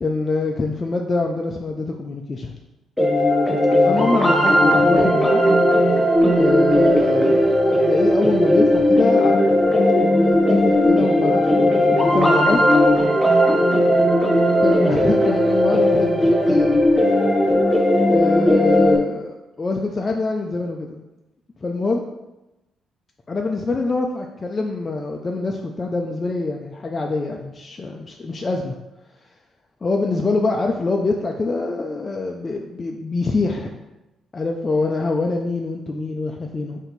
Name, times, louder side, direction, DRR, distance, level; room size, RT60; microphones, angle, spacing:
voice 1, 0.0-2.5 3.8-5.4 6.3-7.4 7.8-12.6 14.6-16.8 18.1-21.0 21.6-22.0 23.3-28.7 29.8-33.8 34.3-36.8, left 3 dB, 30° left, 1 dB, 0.4 m, -24 dB
sound 1, 3.0-19.0, left 1 dB, 5° left, 0.7 m, -17 dB
4.3 x 2.7 x 3.9 m, 1.0 s
cardioid pair, 90°, 0 cm